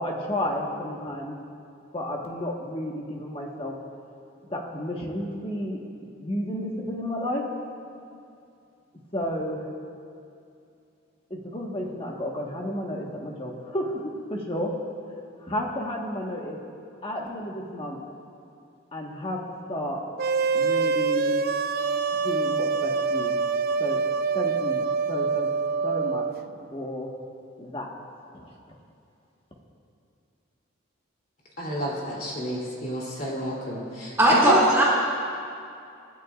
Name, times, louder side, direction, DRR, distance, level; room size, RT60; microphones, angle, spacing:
voice 1, 0.0-1.4 1.9-3.8 4.5-5.8 6.2-7.4 9.1-9.6 11.3-14.7 15.4-16.6 17.0-18.0 18.9-19.4 19.7-20.0 20.5-21.4 22.1-23.4 23.8-24.0 24.3-25.5 25.8-26.3 26.7-27.1 27.6-27.9 28.3-28.5, left 1 dB, 25° left, -1 dB, 1.5 m, -32 dB
sound 1, 20.2-26.3, right 5 dB, 50° right, 0.4 m, -25 dB
voice 2, 31.6-34.1 34.5-34.6, equal, 45° left, -4 dB, 3.2 m, -29 dB
voice 3, 34.2-34.8, right 1 dB, 15° right, -7 dB, 2.6 m, -18 dB
28.0 x 12.0 x 2.5 m, 2.5 s
head